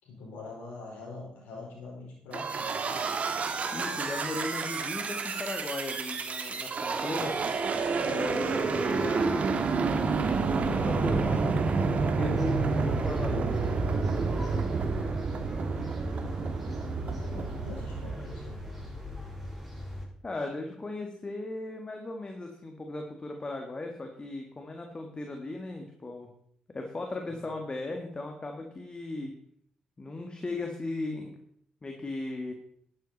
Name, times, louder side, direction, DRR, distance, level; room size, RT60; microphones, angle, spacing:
voice 1, 0.0-3.0 16.9-18.6 27.3-27.4, left 3 dB, 80° left, -2 dB, 4.8 m, -44 dB
sound 1, 2.3-18.9, right 4 dB, 55° right, 1.6 m, -29 dB
voice 2, 3.7-7.4 8.0-9.9 10.7-13.6 20.2-26.3 26.7-29.4 30.0-31.4 31.8-32.5, left 2 dB, 30° left, 3 dB, 2.0 m, -37 dB
sound 2, 12.3-20.1, equal, ahead, 5.9 m, -39 dB
11.5 x 10.5 x 4.2 m, 0.66 s
hypercardioid pair, 50°, 3 cm